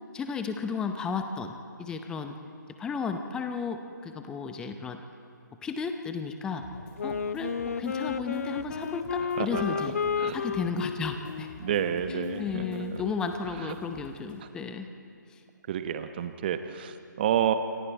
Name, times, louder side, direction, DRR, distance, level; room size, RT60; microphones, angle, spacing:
voice 1, 0.1-2.4 2.8-5.0 5.6-6.7 7.0-10.0 10.3-11.5 12.1-14.9 15.3-15.4, left 5 dB, 5° left, 7 dB, 0.7 m, -34 dB
sound 1, 6.6-14.4, left 3 dB, 30° left, 3.1 m, -49 dB
Wind instrument woodwind instrument, 7.0-13.6, left 6 dB, 45° left, 0.7 m, -33 dB
voice 2, 11.6-12.6 15.7-17.5, right 10 dB, 30° right, 10 dB, 1.0 m, -29 dB
28.5 x 23.5 x 4.5 m, 2.5 s
figure-of-eight pair, 140°, 11 cm